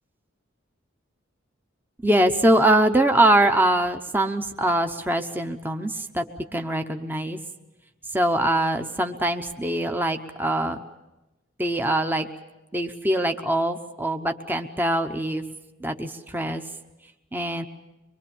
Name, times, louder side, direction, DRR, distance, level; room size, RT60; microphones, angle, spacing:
voice 1, 2.0-6.2 6.5-7.4 8.1-10.8 11.6-12.3 12.7-15.4 15.8-16.6 17.3-17.7, right 1 dB, 10° right, 5 dB, 0.9 m, -23 dB
24.0 x 22.5 x 7.1 m, 1.0 s
head